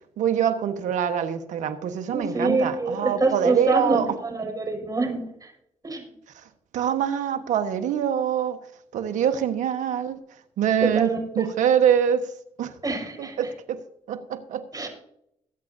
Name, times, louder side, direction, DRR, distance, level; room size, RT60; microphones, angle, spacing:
voice 1, 0.2-4.1 6.3-6.4 6.7-8.6 8.9-10.2 10.6-12.3 12.6-12.7 13.2-13.8 14.1-14.9, right 8 dB, 75° right, 9 dB, 1.3 m, -24 dB
voice 2, 2.1-5.5 5.8-6.0 10.8-11.5 12.8-13.4 14.7-14.9, right 3 dB, 30° right, 2 dB, 5.7 m, -26 dB
22.0 x 8.6 x 2.7 m, 0.74 s
supercardioid pair, 55°, 13 cm